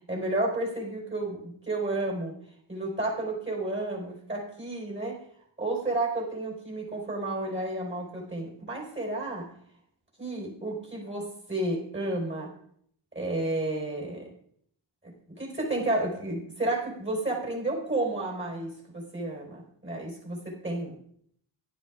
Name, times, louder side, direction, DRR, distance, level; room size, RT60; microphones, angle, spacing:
voice 1, 0.1-2.4 2.7-5.2 5.6-9.5 10.2-12.5 13.1-14.3 15.0-21.0, right 2 dB, 25° right, 0 dB, 4.5 m, -31 dB
11.5 x 10.0 x 3.6 m, 0.66 s
cardioid pair, 45°, 48 cm